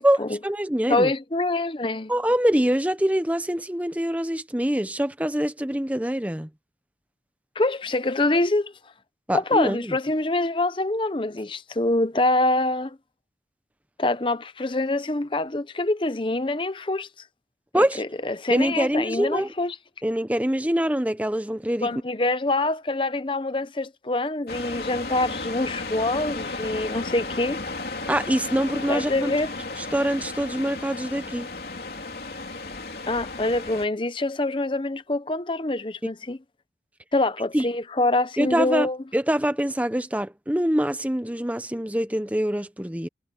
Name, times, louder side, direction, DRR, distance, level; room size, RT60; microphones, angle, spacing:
voice 1, 0.0-1.1 2.1-6.5 9.3-9.9 17.7-18.0 18.5-19.5 20.0-21.9 28.1-29.4 29.8-31.5 37.5-37.6 38.4-43.1, equal, 10° right, 0.8 m, -24 dB
voice 2, 0.9-2.1 7.6-8.7 9.3-13.0 14.0-17.1 17.8-19.8 21.8-27.6 28.9-29.5 33.1-36.4 37.1-39.0, left 2 dB, 30° left, 0.7 m, -25 dB
sound 1, 24.5-33.8, left 3 dB, 60° left, 3.3 m, -34 dB
head